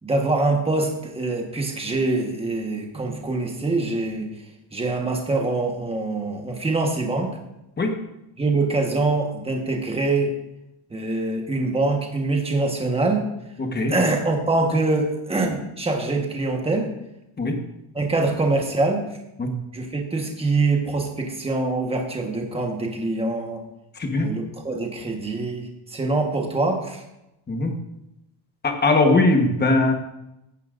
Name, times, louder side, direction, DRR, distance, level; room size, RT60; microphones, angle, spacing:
voice 1, 0.0-4.3 4.7-7.4 8.4-10.4 10.9-13.3 13.9-16.9 17.9-19.1 19.7-23.6 24.2-27.0, right 2 dB, 10° right, 1 dB, 1.3 m, -24 dB
voice 2, 13.6-13.9 17.4-17.6 19.4-19.5 24.0-24.3 27.5-27.7 28.6-29.9, left 2 dB, 20° left, 3 dB, 1.2 m, -20 dB
15.5 x 9.7 x 2.6 m, 0.89 s
cardioid pair, 170°, 49 cm